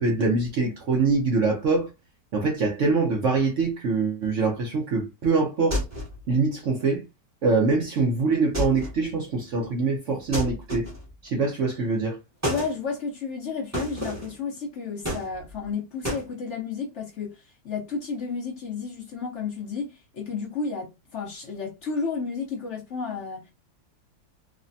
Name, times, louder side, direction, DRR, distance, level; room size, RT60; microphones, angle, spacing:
voice 1, 0.0-1.9 2.3-5.8 6.3-7.0 7.4-10.9 11.2-12.2, right 4 dB, 65° right, 0.7 m, -24 dB
sound 1, 5.7-6.2 8.5-9.0 10.3-11.1 12.4-12.8 13.7-14.4 15.0-15.7 16.0-16.3, equal, 10° right, 0.8 m, -30 dB
voice 2, 12.5-23.5, left 5 dB, 65° left, 0.7 m, -32 dB
3.2 x 2.1 x 2.6 m
omnidirectional pair, 2.0 m